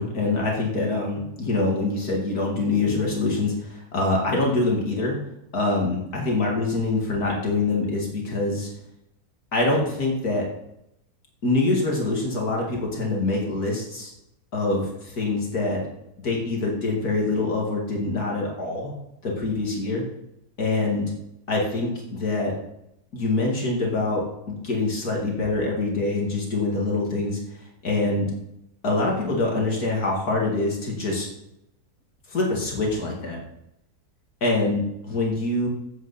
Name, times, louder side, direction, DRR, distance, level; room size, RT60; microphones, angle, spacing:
voice 1, 0.0-5.2 5.5-8.7 9.5-10.5 11.4-14.1 14.5-15.8 16.2-18.9 19.2-20.0 20.6-21.1 21.5-22.5 23.1-28.3 28.8-31.3 32.3-33.4 34.4-35.7, left 2 dB, 65° left, -1 dB, 2.7 m, -25 dB
14.0 x 8.2 x 4.2 m, 0.81 s
omnidirectional pair, 1.7 m